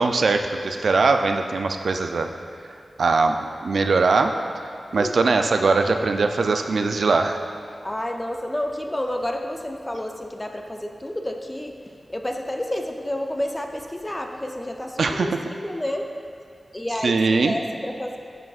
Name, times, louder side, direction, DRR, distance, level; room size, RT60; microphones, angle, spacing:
voice 1, 0.0-2.3 3.0-3.3 3.6-4.4 4.9-7.4 15.0-15.3 17.0-17.6, right 3 dB, 80° right, 6 dB, 0.3 m, -21 dB
voice 2, 7.8-11.8 12.1-16.0 16.7-17.2 17.4-18.2, left 1 dB, 15° left, 3 dB, 0.4 m, -30 dB
9.1 x 6.0 x 2.4 m, 2.4 s
wide cardioid pair, 120°, 0 cm